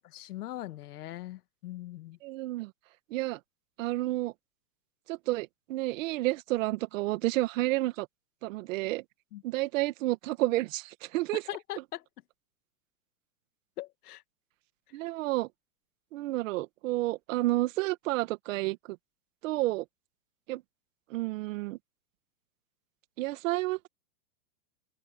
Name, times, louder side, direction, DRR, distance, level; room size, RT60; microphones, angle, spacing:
voice 1, 0.0-2.2 9.3-9.4 11.5-12.0 13.8-14.2, left 14 dB, 70° left, 2.4 m, -41 dB
voice 2, 2.2-2.7 3.1-3.4 3.8-4.3 5.1-8.1 8.4-9.0 9.4-11.4 14.9-15.5 16.1-18.8 19.4-19.9 20.5-20.6 21.1-21.8 23.2-23.9, right 18 dB, 50° right, 1.8 m, -30 dB
hypercardioid pair, 145°, 48 cm